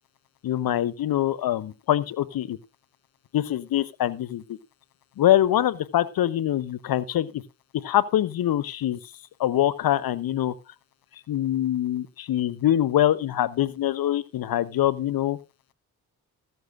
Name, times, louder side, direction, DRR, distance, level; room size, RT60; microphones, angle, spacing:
voice 1, 0.4-2.6 3.3-4.6 5.2-7.4 7.7-9.0 9.4-10.5 11.3-15.4, left 12 dB, 65° left, 17 dB, 1.1 m, -24 dB
14.5 x 14.0 x 2.5 m, 0.27 s
supercardioid pair, 50°, 38 cm